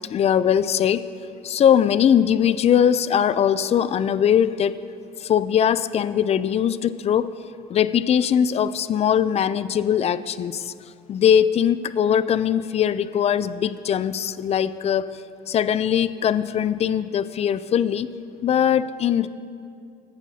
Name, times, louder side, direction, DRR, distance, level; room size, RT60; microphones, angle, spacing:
voice 1, 0.1-1.0 1.4-4.7 5.2-7.3 7.7-10.7 11.1-15.0 15.5-18.1 18.4-19.3, left 9 dB, 40° left, 14 dB, 0.4 m, -20 dB
19.0 x 8.2 x 2.8 m, 2.4 s
cardioid pair, 110°, 17 cm